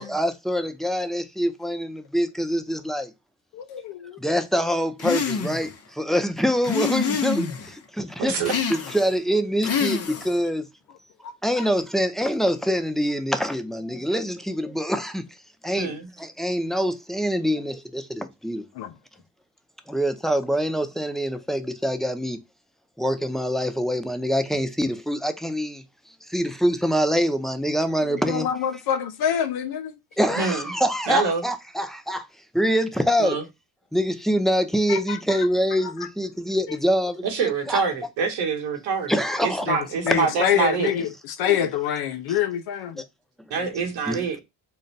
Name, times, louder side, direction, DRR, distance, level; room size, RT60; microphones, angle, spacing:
voice 1, 0.0-3.1 4.2-8.4 8.7-10.7 11.4-15.2 15.6-18.7 19.9-22.4 23.0-25.8 26.3-28.5 30.2-32.3 32.5-33.4 33.9-37.8 39.1-39.7 40.1-40.2 41.4-41.5 43.6-43.7 44.1-44.3, equal, ahead, 0.5 m, -25 dB
voice 2, 3.5-4.2 11.2-11.7 18.7-18.9 28.1-30.0 34.9-35.4 36.7-36.8 39.7-39.8 40.0-43.0, left 9 dB, 65° left, 0.7 m, -26 dB
sound 1, 5.0-5.7 6.6-7.7 8.4-9.2 9.6-10.4, left 6 dB, 35° left, 0.8 m, -27 dB
voice 3, 8.2-8.5 15.7-16.1 30.4-30.7 31.1-31.4 33.2-33.4 37.2-40.9 43.5-44.4, right 5 dB, 80° right, 1.3 m, -26 dB
3.9 x 2.2 x 3.9 m
cardioid pair, 90°, 41 cm